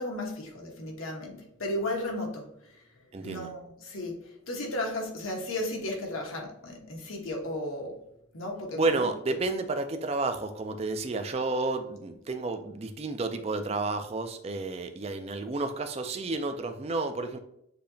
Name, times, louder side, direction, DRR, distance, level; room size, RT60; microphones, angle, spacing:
voice 1, 0.0-2.5 3.2-8.0 8.3-8.8, left 1 dB, 90° left, 0 dB, 1.2 m, -34 dB
voice 2, 3.1-3.5 8.7-17.4, right 3 dB, 30° right, 7 dB, 0.4 m, -31 dB
6.7 x 2.9 x 2.7 m, 0.77 s
head